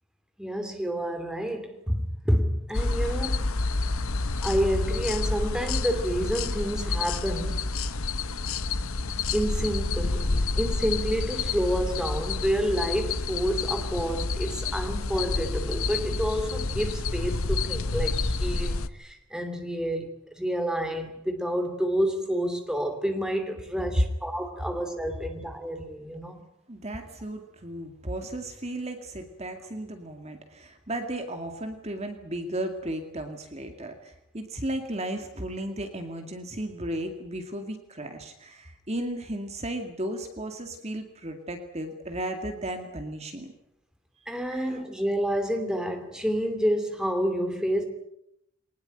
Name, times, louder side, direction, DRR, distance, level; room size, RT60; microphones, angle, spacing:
voice 1, 0.4-3.4 4.4-7.6 9.3-20.1 20.4-26.4 44.3-47.8, equal, 5° right, 2.7 m, -29 dB
sound 1, 2.7-18.9, left 3 dB, 75° left, 1.1 m, -29 dB
voice 2, 26.7-43.5 44.5-44.8, right 1 dB, 30° right, 2.2 m, -35 dB
22.5 x 19.5 x 9.0 m
head